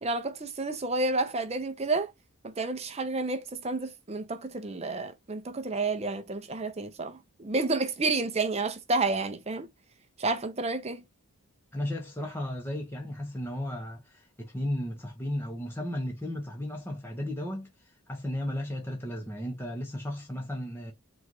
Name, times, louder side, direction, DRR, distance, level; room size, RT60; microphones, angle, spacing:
voice 1, 0.0-2.1 2.4-9.7 10.2-11.0, right 3 dB, 30° right, 0.5 m, -30 dB
voice 2, 11.7-17.7 18.1-20.9, left 1 dB, 10° left, 0.7 m, -34 dB
3.9 x 2.4 x 4.6 m
head